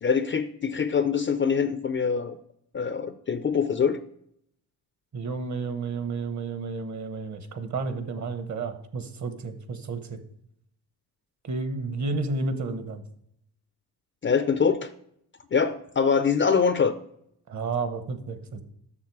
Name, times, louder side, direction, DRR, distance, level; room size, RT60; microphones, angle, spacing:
voice 1, 0.0-2.4 2.7-4.0 14.2-14.9 15.5-16.9, left 6 dB, 30° left, 11 dB, 0.4 m, -24 dB
voice 2, 5.1-10.2 11.4-13.0 17.5-18.6, right 3 dB, 40° right, 10 dB, 1.0 m, -31 dB
7.4 x 6.5 x 4.7 m, 0.72 s
cardioid pair, 95°, 42 cm